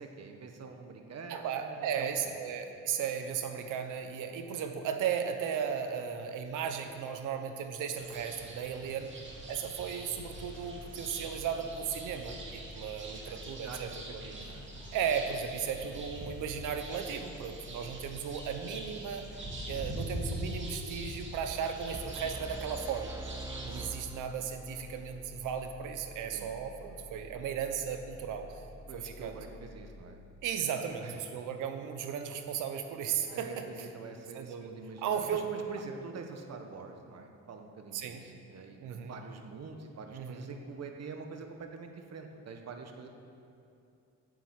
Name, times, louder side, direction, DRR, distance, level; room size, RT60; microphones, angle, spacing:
voice 1, 0.0-2.3 8.9-9.0 13.2-14.7 26.3-26.5 28.9-30.2 31.0-31.2 33.3-43.1, right 4 dB, 55° right, 4 dB, 1.5 m, -46 dB
voice 2, 1.3-9.1 9.5-14.2 14.9-19.2 19.7-23.2 23.6-28.6 28.9-29.4 30.4-33.9 34.3-35.5 37.9-38.2 38.8-39.1 40.1-40.5, right 7 dB, 85° right, 6 dB, 1.2 m, -36 dB
sound 1, 8.0-23.8, right 1 dB, 40° right, 2.4 m, -44 dB
sound 2, 10.1-30.0, left 2 dB, 55° left, 0.9 m, -50 dB
sound 3, 21.9-24.9, right 2 dB, 10° right, 0.5 m, -44 dB
9.8 x 8.0 x 8.3 m, 2.6 s
cardioid pair, 90°, 30 cm